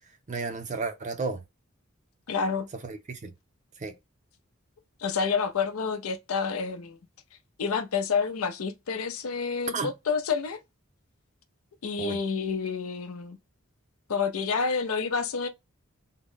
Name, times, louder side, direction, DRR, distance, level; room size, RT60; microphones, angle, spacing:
voice 1, 0.3-1.4 2.8-3.3 3.8-3.9 9.7-9.9 12.0-12.2, right 4 dB, 35° right, 0.5 m, -32 dB
voice 2, 2.3-2.7 5.0-7.0 7.6-10.6 11.8-13.4 14.1-15.5, left 5 dB, 90° left, 0.6 m, -29 dB
3.6 x 2.0 x 3.6 m
head